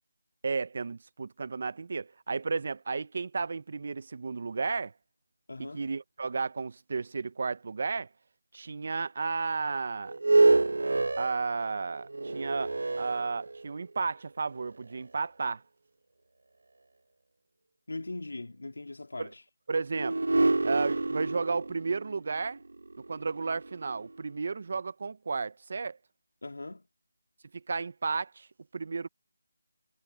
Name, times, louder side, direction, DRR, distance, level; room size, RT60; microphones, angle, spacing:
voice 1, 0.4-4.9 5.6-8.1 8.5-10.2 11.2-15.6 19.2-19.3 19.7-20.2 20.6-22.6 23.1-26.0 27.5-28.5 28.7-29.1, right 4 dB, 35° right, 0.4 m, -33 dB
voice 2, 5.5-5.9 17.9-19.4 26.4-26.8, left 2 dB, 85° left, 2.3 m, -40 dB
sound 1, 10.1-13.9 14.6-14.7 19.9-24.2, right 3 dB, 60° right, 0.7 m, -28 dB
figure-of-eight pair, 180°, 0 cm